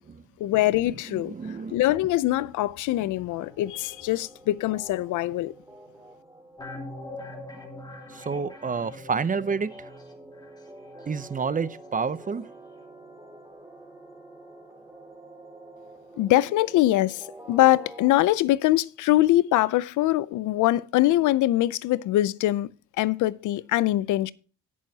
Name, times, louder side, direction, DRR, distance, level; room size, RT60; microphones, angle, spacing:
voice 1, 0.4-1.3 1.7-5.5 16.2-22.7 23.0-24.3, left 15 dB, 85° left, 0.5 m, -23 dB
voice 2, 1.1-1.8 8.1-9.7 11.1-12.4, right 5 dB, 25° right, 0.7 m, -29 dB
sound 1, 3.3-18.2, right 1 dB, 10° right, 2.4 m, -48 dB
sound 2, 6.6-12.2 12.4-12.5, left 2 dB, 15° left, 2.8 m, -43 dB
18.0 x 6.3 x 2.8 m
cardioid pair, 90°, 30 cm